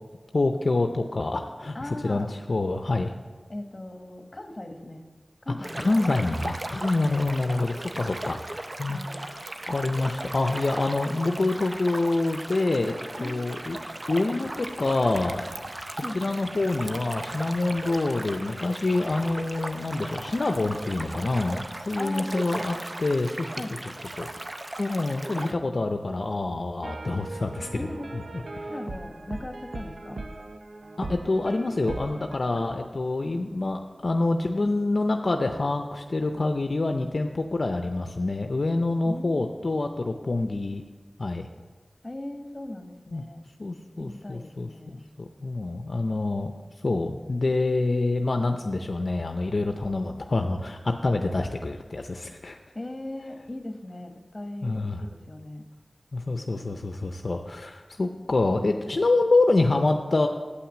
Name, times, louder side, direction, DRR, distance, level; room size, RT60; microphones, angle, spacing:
voice 1, 0.3-3.1 5.8-8.4 8.8-9.4 9.7-12.9 13.2-13.8 14.1-15.4 16.1-23.5 24.2-24.3 24.8-27.7 28.1-28.2 28.6-28.7 31.0-40.8 41.2-41.5 43.1-43.2 43.6-46.5 46.8-52.6 54.6-55.0 56.1-60.3, left 2 dB, 70° left, 5 dB, 0.5 m, -26 dB
voice 2, 1.7-2.3 3.5-5.0 5.4-5.9 6.8-7.2 8.9-9.2 13.2-13.6 16.0-16.4 22.0-22.3 23.5-23.7 27.7-28.1 28.7-30.2 32.6-32.8 39.0-39.5 42.0-43.4 44.0-45.0 52.7-55.6, left 1 dB, 40° left, 5 dB, 1.1 m, -38 dB
sound 1, 5.6-25.5, right 1 dB, 40° right, 0.5 m, -37 dB
sound 2, 14.4-16.0 16.6-18.4 19.0-20.1, equal, 15° left, 2.8 m, -50 dB
sound 3, 26.8-32.4, right 2 dB, 85° right, 0.5 m, -39 dB
8.0 x 5.8 x 7.3 m, 1.4 s
wide cardioid pair, 50°, 0 cm